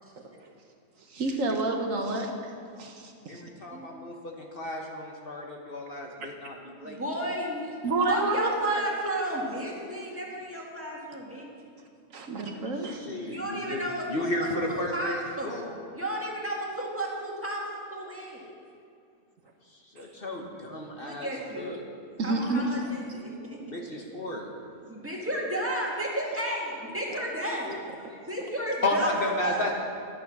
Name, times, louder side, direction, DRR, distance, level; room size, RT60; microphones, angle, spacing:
voice 1, 1.1-3.4 7.8-8.8 12.1-13.4 22.2-22.6, right 3 dB, 65° right, 3 dB, 1.4 m, -29 dB
voice 2, 3.3-7.0 13.0-13.8 14.1-15.8 19.9-21.8 22.4-22.5 23.7-24.5 27.1-27.2 27.6-27.8 28.1-28.2 28.8-29.7, left 1 dB, 45° left, 0 dB, 1.3 m, -33 dB
voice 3, 6.8-7.6 8.1-11.5 13.2-15.5 15.9-17.6 17.9-18.5 21.0-21.8 22.2-23.6 24.9-27.7 28.3-29.1 29.4-29.7, right 1 dB, 10° right, -3 dB, 1.9 m, -33 dB
11.5 x 9.3 x 6.0 m, 2.4 s
omnidirectional pair, 1.5 m